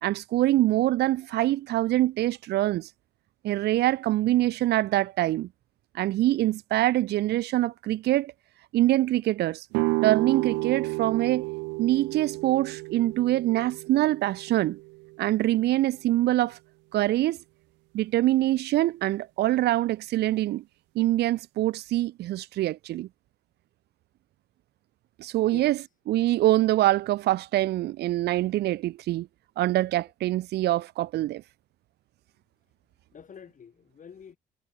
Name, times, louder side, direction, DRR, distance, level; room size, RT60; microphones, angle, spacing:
voice 1, 0.0-2.9 3.4-5.5 5.9-8.3 8.7-9.7 10.0-11.4 11.8-14.8 15.2-16.6 16.9-17.4 17.9-20.6 20.9-23.1 25.2-25.8 26.1-29.3 29.6-31.4, right 15 dB, 65° right, 0.9 m, -24 dB
sound 1, 9.7-15.5, right 27 dB, 85° right, 2.2 m, -31 dB
voice 2, 25.5-25.9 33.1-34.4, left 7 dB, 45° left, 5.9 m, -47 dB
supercardioid pair, 65°, 18 cm